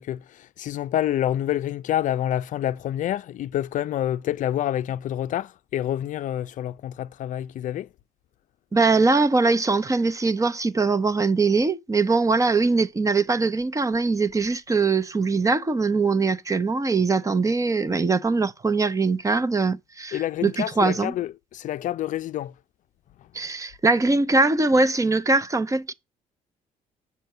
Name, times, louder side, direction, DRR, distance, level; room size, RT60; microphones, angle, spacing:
voice 1, 0.0-7.9 20.1-22.5, left 12 dB, 60° left, 0.5 m, -28 dB
voice 2, 8.7-21.1 23.3-25.9, right 3 dB, 20° right, 0.8 m, -22 dB
7.7 x 5.6 x 5.5 m
supercardioid pair, 75°, 15 cm